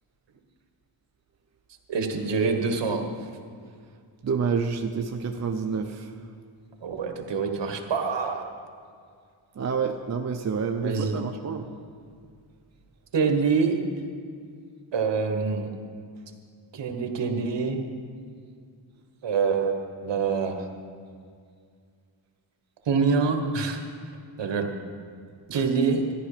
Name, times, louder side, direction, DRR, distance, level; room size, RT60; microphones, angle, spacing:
voice 1, 1.9-3.0 6.8-8.4 10.8-11.2 13.1-13.8 14.9-15.7 16.7-17.8 19.2-20.6 22.9-23.8 24.4-24.7 25.5-26.0, right 5 dB, 65° right, 5 dB, 1.4 m, -25 dB
voice 2, 4.2-6.0 9.6-11.7 25.5-25.6, right 5 dB, 35° right, 4 dB, 0.6 m, -28 dB
13.5 x 11.0 x 5.0 m, 2.2 s
wide cardioid pair, 130°, 47 cm